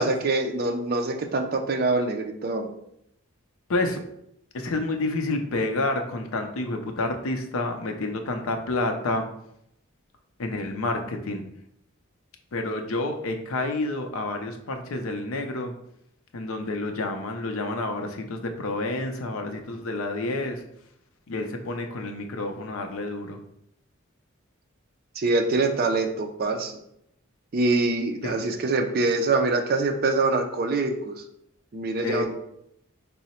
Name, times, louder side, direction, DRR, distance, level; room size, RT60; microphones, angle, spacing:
voice 1, 0.0-2.7 25.2-26.7 27.5-31.2 31.7-32.3, right 3 dB, 45° right, 4 dB, 0.4 m, -24 dB
voice 2, 4.5-9.3 10.4-11.4 12.5-15.7 16.3-20.6 21.3-23.4 28.2-28.5 32.0-32.3, left 2 dB, 85° left, 5 dB, 0.5 m, -29 dB
3.7 x 2.0 x 4.2 m, 0.75 s
head